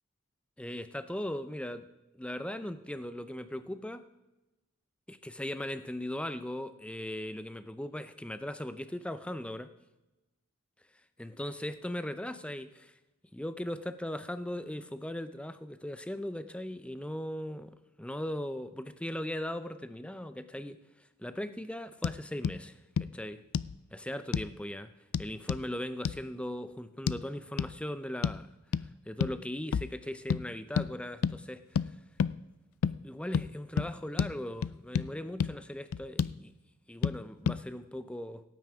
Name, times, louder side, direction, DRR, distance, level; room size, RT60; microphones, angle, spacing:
voice 1, 0.6-1.9 2.1-4.0 5.1-9.7 11.2-12.9 13.3-20.8 21.2-23.4 23.9-24.9 25.2-28.5 29.1-31.6 33.0-36.5 36.9-38.4, left 1 dB, 5° left, 11 dB, 0.5 m, -38 dB
sound 1, 22.0-22.2 22.4-22.6 23.0-23.1 23.5-23.8 24.3-24.5 25.1-25.6 26.0-26.2 27.1-27.2 27.6-27.7 28.2-28.4 28.7-28.9 29.2-29.4 29.7-29.9 30.3-30.4 30.8-30.9 31.2-31.4 31.8-31.9 32.2-32.4 32.8-33.0 33.3-33.5 33.8-33.9 34.2-34.3 34.6-35.1 35.4-35.5 35.9-36.4 37.0-37.2 37.5-37.6, left 6 dB, 65° left, 0.3 m, -29 dB
17.0 x 9.3 x 3.6 m, 1.0 s
head